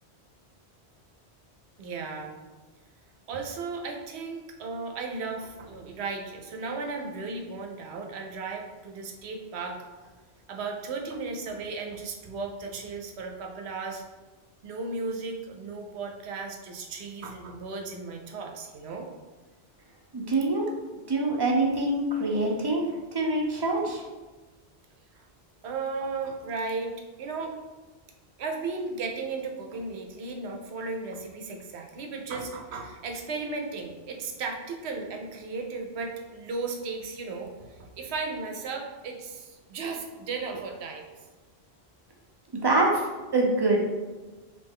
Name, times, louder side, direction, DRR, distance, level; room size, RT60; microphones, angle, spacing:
voice 1, 1.8-2.3 3.3-9.8 10.5-14.0 14.6-19.1 25.2-25.3 25.6-27.6 28.4-41.1, right 4 dB, 85° right, 2 dB, 0.9 m, -35 dB
voice 2, 20.1-20.7 21.1-22.8 23.1-24.0 42.6-43.1 43.3-43.8, right 2 dB, 30° right, -1 dB, 0.5 m, -24 dB
3.2 x 2.8 x 3.5 m, 1.2 s
omnidirectional pair, 1.1 m